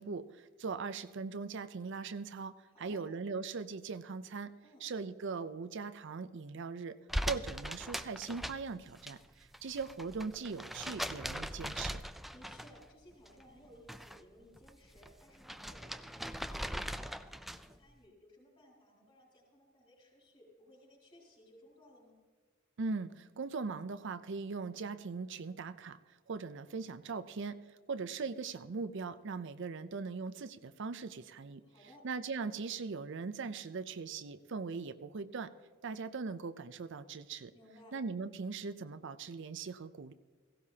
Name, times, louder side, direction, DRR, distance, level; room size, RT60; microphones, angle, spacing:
voice 1, 0.0-4.5 4.8-7.0 7.2-12.0 22.8-27.6 27.9-31.6 32.0-35.5 35.8-37.5 37.9-40.1, right 4 dB, 60° right, 12 dB, 0.5 m, -40 dB
voice 2, 2.7-3.0 4.6-4.8 12.3-22.2 31.6-32.1 37.5-38.0, equal, 25° left, -9 dB, 4.3 m, -60 dB
sound 1, 7.1-9.1 9.4-12.9 13.3-14.2 14.5-17.8, equal, ahead, 0.4 m, -40 dB
17.0 x 16.0 x 2.8 m, 1.5 s
head